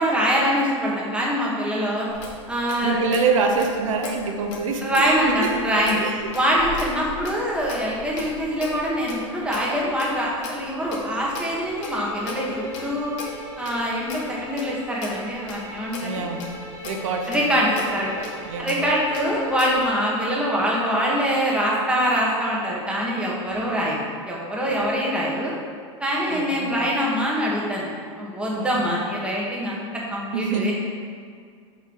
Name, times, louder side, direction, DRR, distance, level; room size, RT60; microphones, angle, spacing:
voice 1, 0.0-2.1 2.5-3.2 4.2-4.3 4.8-6.0 6.3-13.1 13.6-16.2 17.3-18.1 18.6-25.5 26.0-27.9 28.2-30.7, equal, 5° right, -5 dB, 2.1 m, -24 dB
Clock, 2.1-19.9, left 3 dB, 70° left, 2.1 m, -39 dB
voice 2, 2.8-4.9 5.2-5.5 6.0-6.3 16.0-16.4 16.8-17.5 18.4-18.7 26.3-26.8 28.5-29.0 30.3-30.7, right 4 dB, 85° right, 3 dB, 1.0 m, -26 dB
sound 1, 11.2-20.0, equal, 25° right, 1.8 m, -41 dB
7.3 x 4.7 x 6.5 m, 2.1 s
supercardioid pair, 120°, 16 cm